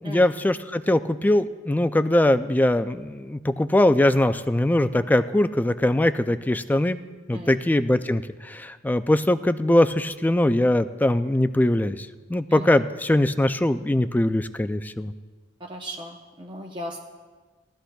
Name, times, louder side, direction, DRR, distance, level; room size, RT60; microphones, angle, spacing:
voice 1, 0.0-7.0 7.3-15.1, left 1 dB, 10° left, 11 dB, 0.3 m, -21 dB
voice 2, 15.6-17.0, equal, 25° right, -1 dB, 0.8 m, -36 dB
18.0 x 13.0 x 2.3 m, 1.4 s
head